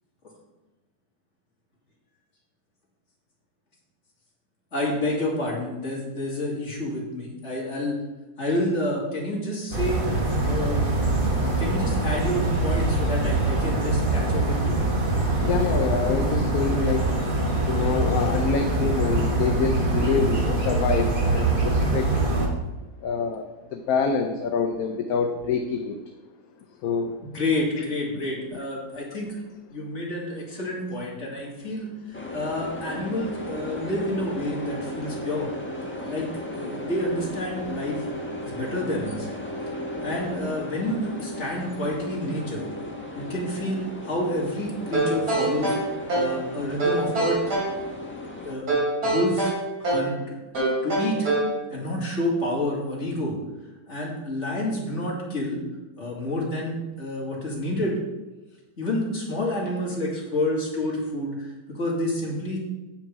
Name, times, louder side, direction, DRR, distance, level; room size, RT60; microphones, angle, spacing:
voice 1, 4.7-8.0 8.4-10.0 10.4-10.9 11.2-14.8 27.2-29.4 29.7-35.5 36.0-38.0 38.4-39.3 40.0-42.7 43.1-45.8 46.1-47.4 48.4-48.7 49.0-50.3 50.8-51.3 51.7-53.4 53.9-55.6 56.0-57.9 58.8-62.6, left 1 dB, 45° left, -3 dB, 2.9 m, -29 dB
sound 1, 9.7-22.5, right 2 dB, 35° right, 1.7 m, -24 dB
voice 2, 15.4-17.2 17.7-22.1 23.0-23.4 23.7-26.0 26.8-27.1 27.8-27.9, left 5 dB, 70° left, 5 dB, 1.2 m, -26 dB
sound 2, 32.1-48.6, left 1 dB, 10° left, 1.1 m, -35 dB
sound 3, 44.9-46.4 46.8-47.8 48.7-50.1 50.5-51.6, right 2 dB, 85° right, 4.1 m, -24 dB
9.1 x 7.9 x 4.7 m, 1.1 s
omnidirectional pair, 1.7 m